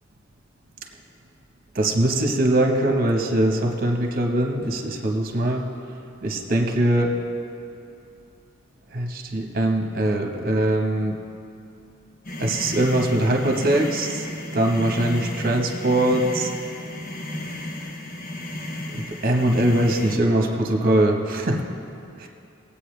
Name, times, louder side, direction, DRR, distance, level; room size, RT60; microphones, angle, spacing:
voice 1, 1.7-5.7 6.2-7.1 8.9-11.2 12.4-16.5 18.9-21.6 22.2-22.3, right 1 dB, 45° right, 2 dB, 1.3 m, -22 dB
sound 1, 12.2-20.2, left 1 dB, 45° left, 1.0 m, -33 dB
21.0 x 8.5 x 3.4 m, 2.7 s
head